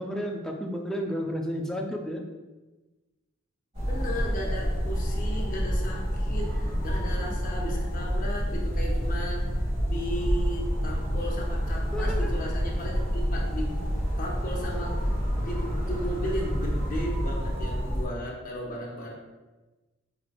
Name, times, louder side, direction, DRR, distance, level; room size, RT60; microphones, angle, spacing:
voice 1, 0.0-2.2 11.9-12.3, equal, 5° left, 1 dB, 0.3 m, -32 dB
sound 1, 3.7-18.1, equal, 30° right, 1.2 m, -28 dB
voice 2, 3.9-9.4 9.8-13.7 14.2-15.1 15.4-19.1, equal, 40° left, -2 dB, 0.6 m, -35 dB
4.8 x 3.0 x 2.2 m, 1.2 s
head